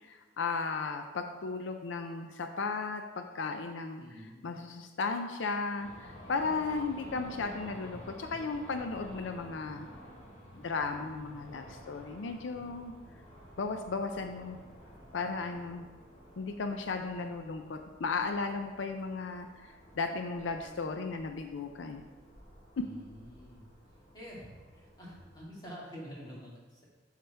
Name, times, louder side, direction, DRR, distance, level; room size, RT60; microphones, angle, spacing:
voice 1, 0.0-4.0 4.4-9.9 10.6-12.9 13.6-14.6 15.1-15.9 16.4-22.1, left 4 dB, 80° left, 6 dB, 0.5 m, -35 dB
voice 2, 4.0-4.6 22.8-23.7 24.1-26.8, equal, 20° left, -6 dB, 2.0 m, -48 dB
sound 1, 5.8-25.4, equal, 35° left, 1.5 m, -52 dB
7.8 x 6.6 x 3.4 m, 1.3 s
head